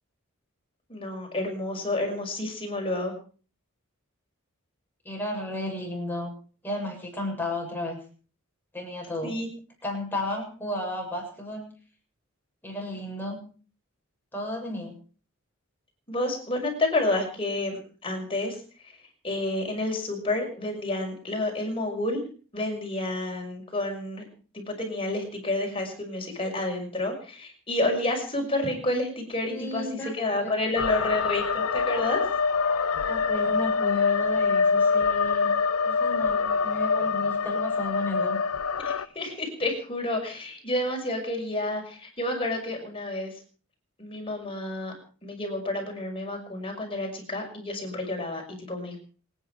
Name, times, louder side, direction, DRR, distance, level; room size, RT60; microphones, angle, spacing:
voice 1, 0.9-3.1 9.2-9.5 16.1-18.6 18.8-18.9 19.2-22.2 22.5-24.2 24.5-32.2 38.8-43.4 44.0-44.9 45.2-49.0, left 2 dB, 25° left, 2 dB, 6.0 m, -30 dB
voice 2, 5.0-6.3 6.6-8.0 8.7-9.3 9.8-11.7 12.6-13.4 14.3-15.0 29.4-30.1 30.4-30.9 33.0-35.5 35.8-38.4, left 1 dB, 10° left, 0 dB, 7.4 m, -33 dB
sound 1, 30.8-39.0, left 5 dB, 90° left, 0.8 m, -25 dB
27.0 x 10.0 x 5.0 m, 0.41 s
head